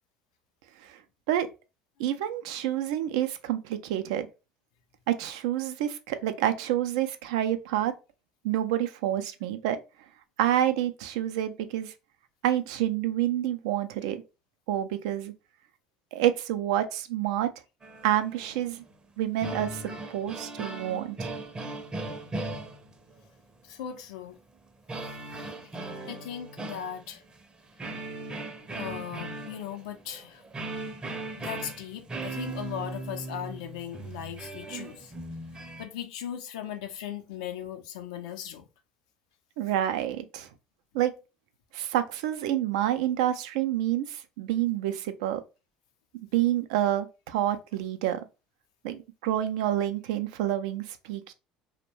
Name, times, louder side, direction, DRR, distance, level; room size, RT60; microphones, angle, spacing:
voice 1, 2.0-4.3 5.1-7.9 8.4-9.8 10.4-11.9 12.4-14.2 14.7-15.3 16.1-17.5 18.0-18.8 19.2-19.8 20.1-21.3 39.6-40.5 40.9-41.1 41.7-45.4 46.3-48.3 48.8-51.3, right 12 dB, 80° right, 0.4 m, -28 dB
sound 1, 17.8-18.9 19.2-23.3 24.9-27.4 27.8-35.9, right 2 dB, 25° right, 0.6 m, -38 dB
voice 2, 23.6-24.4 25.8-27.2 28.7-30.4 31.4-35.1 35.8-38.6, left 9 dB, 85° left, 0.5 m, -38 dB
2.6 x 2.1 x 2.9 m
hypercardioid pair, 70°, 3 cm